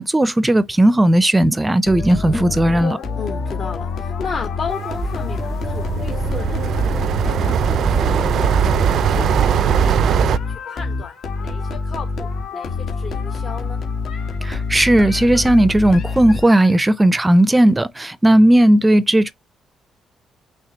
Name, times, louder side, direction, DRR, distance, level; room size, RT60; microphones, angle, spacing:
voice 1, 0.0-3.0 14.4-19.3, right 1 dB, 15° right, 0.5 m, -15 dB
sound 1, 1.9-16.8, left 4 dB, 70° left, 1.7 m, -26 dB
voice 2, 3.2-6.9 7.3-8.9 9.1-13.8, left 5 dB, 50° left, 1.3 m, -34 dB
sound 2, 4.7-10.4, right 9 dB, 70° right, 0.4 m, -20 dB
5.9 x 3.1 x 2.8 m
cardioid pair, 90°, 0 cm